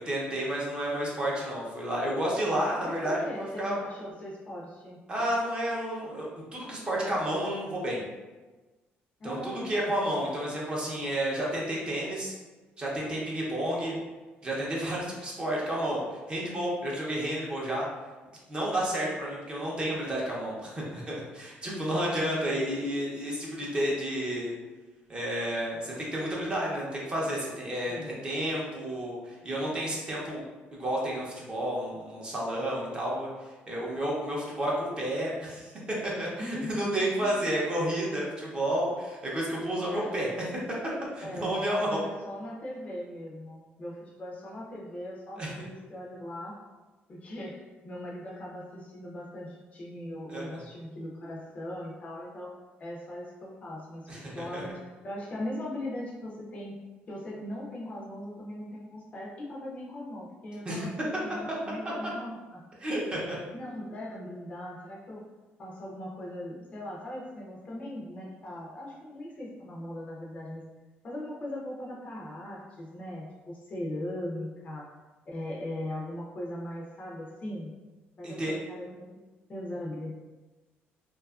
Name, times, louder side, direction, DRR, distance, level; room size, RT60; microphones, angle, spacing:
voice 1, 0.0-3.8 5.1-6.3 6.5-8.0 9.2-12.3 12.8-14.0 14.4-17.9 18.5-24.5 25.1-30.4 30.8-35.7 36.0-40.3 41.1-42.0 45.4-45.5 50.3-50.6 54.1-54.6 60.7-60.9 62.8-63.4 78.2-78.6, right 1 dB, 25° right, -4 dB, 0.6 m, -31 dB
voice 2, 2.8-5.0 9.2-9.9 13.6-13.8 21.6-22.6 27.9-28.2 36.4-36.8 39.7-40.3 41.2-46.6 47.1-52.5 52.8-54.8 55.0-56.8 57.1-60.9 61.2-62.6 63.5-65.2 65.6-70.6 71.0-74.9 75.3-77.7 78.2-79.1 79.5-80.1, left 1 dB, 35° left, -4 dB, 0.5 m, -39 dB
2.6 x 2.3 x 2.3 m, 1.2 s
cardioid pair, 145°, 4 cm